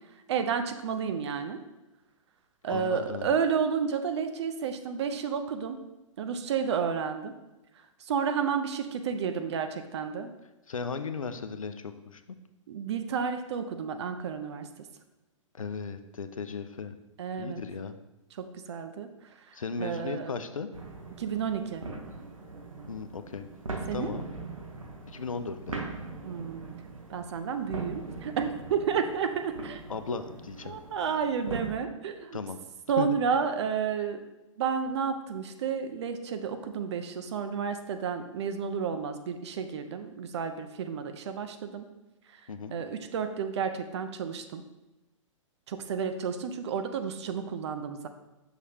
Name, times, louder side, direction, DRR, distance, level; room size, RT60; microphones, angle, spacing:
voice 1, 0.3-1.6 2.6-5.8 6.2-7.3 8.0-10.3 12.7-14.7 17.2-17.6 18.4-19.1 19.8-20.3 21.2-21.8 23.9-24.1 26.2-26.6 27.1-29.8 30.7-32.4 32.9-34.2 34.6-41.9 42.7-44.6 45.7-48.1, right 6 dB, 55° right, 8 dB, 0.7 m, -31 dB
voice 2, 2.7-3.4 10.7-12.4 15.6-16.9 17.4-18.0 19.5-20.7 22.9-23.5 23.9-24.2 25.1-25.8 29.9-30.8 32.3-32.6 33.0-33.1 42.5-42.8, left 5 dB, 85° left, 9 dB, 0.5 m, -36 dB
sound 1, 20.7-31.7, right 3 dB, 90° right, 1.0 m, -41 dB
6.4 x 5.8 x 2.8 m, 1.0 s
figure-of-eight pair, 120°, 17 cm